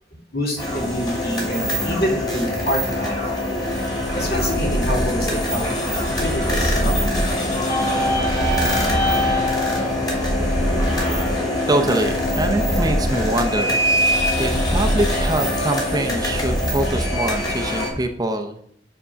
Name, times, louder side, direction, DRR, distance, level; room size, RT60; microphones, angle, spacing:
voice 1, 0.3-3.1 4.1-5.7 6.2-7.0, equal, 60° left, -2 dB, 2.6 m, -26 dB
sound 1, 0.6-17.9, equal, 25° left, 3.0 m, -22 dB
voice 2, 11.7-18.6, right 1 dB, 20° right, 5 dB, 0.6 m, -24 dB
9.5 x 3.7 x 5.6 m, 0.67 s
head